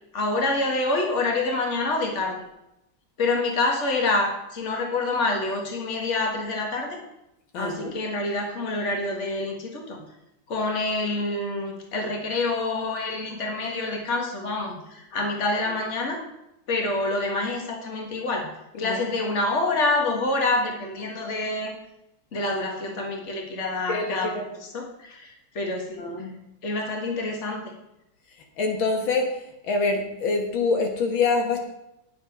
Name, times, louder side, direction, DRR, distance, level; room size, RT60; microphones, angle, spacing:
voice 1, 0.1-2.4 3.2-7.0 7.6-10.0 10.5-16.2 16.7-21.8 22.3-26.1 26.6-27.6, left 2 dB, 35° left, 2 dB, 1.9 m, -27 dB
voice 2, 7.5-7.9 18.7-19.0 23.9-24.4 26.0-26.3 28.6-31.6, left 3 dB, 75° left, 3 dB, 2.1 m, -25 dB
9.5 x 7.5 x 5.8 m, 0.85 s
omnidirectional pair, 2.2 m